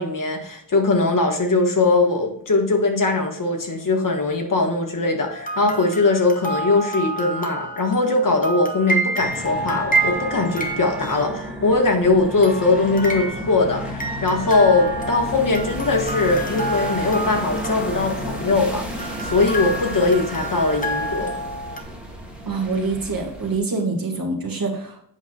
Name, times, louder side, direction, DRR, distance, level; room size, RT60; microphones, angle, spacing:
voice 1, 0.0-21.3, left 3 dB, 45° left, 2 dB, 1.4 m, -20 dB
sound 1, 5.3-11.6 12.4-13.7 14.0-18.6 19.0-21.8, right 2 dB, 20° left, 0.9 m, -29 dB
sound 2, 9.2-23.6, equal, 5° right, 1.6 m, -32 dB
voice 2, 22.4-25.0, right 3 dB, 50° right, 1 dB, 1.6 m, -25 dB
8.1 x 5.6 x 2.3 m, 0.68 s
wide cardioid pair, 165°, 44 cm